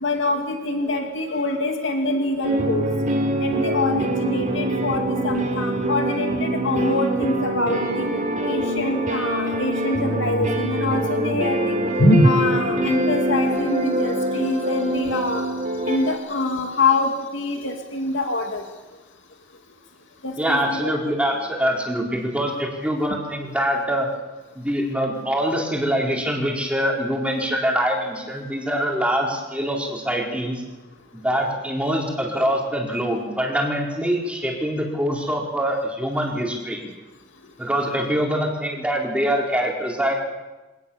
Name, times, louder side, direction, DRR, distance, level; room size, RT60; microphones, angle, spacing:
voice 1, 0.0-2.9 3.4-8.1 8.5-15.4 15.9-18.6 20.2-21.0, left 2 dB, 70° left, 3 dB, 2.6 m, -24 dB
sound 1, 2.4-16.2, right 1 dB, 40° right, 3.5 m, -24 dB
voice 2, 20.4-24.1 24.5-30.6 31.1-36.8 37.6-40.1, equal, 5° right, -1 dB, 4.2 m, -24 dB
25.0 x 19.0 x 7.2 m, 1.1 s
head